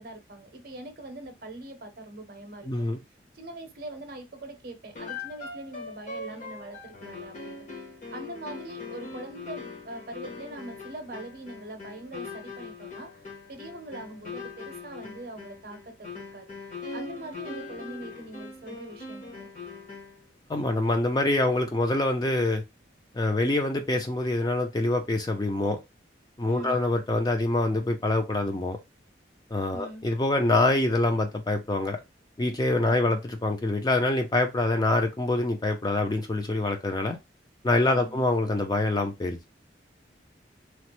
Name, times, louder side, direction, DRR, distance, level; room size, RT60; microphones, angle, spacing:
voice 1, 0.0-2.7 3.3-7.6 8.1-13.1 13.5-16.5 16.9-19.5 26.4-26.8 29.7-30.0 37.9-38.2, right 2 dB, 50° right, 0.6 m, -42 dB
voice 2, 2.7-3.0 20.5-22.6 23.1-25.8 26.4-28.8 29.5-32.0 32.4-37.2 37.6-39.4, left 2 dB, 20° left, 0.3 m, -25 dB
sound 1, 4.9-20.3, left 4 dB, 40° left, 0.8 m, -41 dB
3.0 x 2.0 x 2.9 m
head